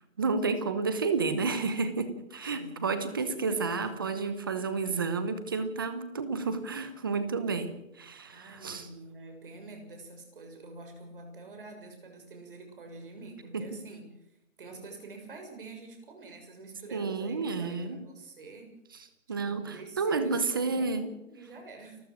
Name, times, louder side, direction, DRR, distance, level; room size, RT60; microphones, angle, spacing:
voice 1, 0.2-8.9 13.5-13.8 16.9-18.0 19.3-21.0, right 4 dB, 15° right, 11 dB, 1.0 m, -31 dB
voice 2, 2.4-3.4 8.3-14.0 14.6-18.7 19.3-22.0, right 3 dB, 40° right, 4 dB, 6.7 m, -47 dB
29.5 x 14.5 x 6.5 m, 0.82 s
hypercardioid pair, 170°, 40 cm